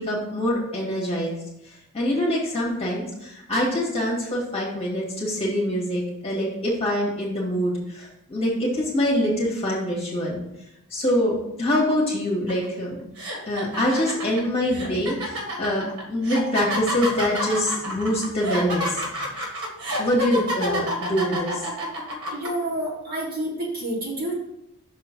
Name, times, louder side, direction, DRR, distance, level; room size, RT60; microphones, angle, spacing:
voice 1, 0.0-10.4 10.9-13.1 13.5-19.3 20.0-21.6, equal, 25° left, -5 dB, 1.8 m, -25 dB
sound 1, 12.5-12.7 13.2-22.5, equal, 80° right, 1.6 m, -29 dB
voice 2, 22.3-24.3, right 1 dB, 40° right, -6 dB, 2.7 m, -29 dB
6.2 x 3.7 x 6.0 m, 0.84 s
head